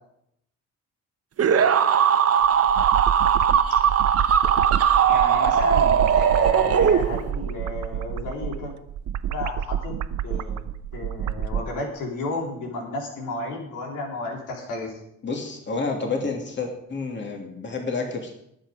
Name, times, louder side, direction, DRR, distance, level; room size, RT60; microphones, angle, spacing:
sound 1, 1.4-7.4, right 8 dB, 55° right, 1.2 m, -19 dB
sound 2, 2.4-11.7, right 9 dB, 70° right, 0.8 m, -29 dB
voice 1, 5.1-8.7 9.3-10.0 10.2-10.6 10.9-15.0, left 3 dB, 90° left, 0 dB, 3.7 m, -33 dB
voice 2, 15.2-18.3, left 4 dB, 40° left, 2 dB, 2.8 m, -29 dB
19.5 x 7.7 x 5.1 m, 0.75 s
cardioid pair, 90°, 30 cm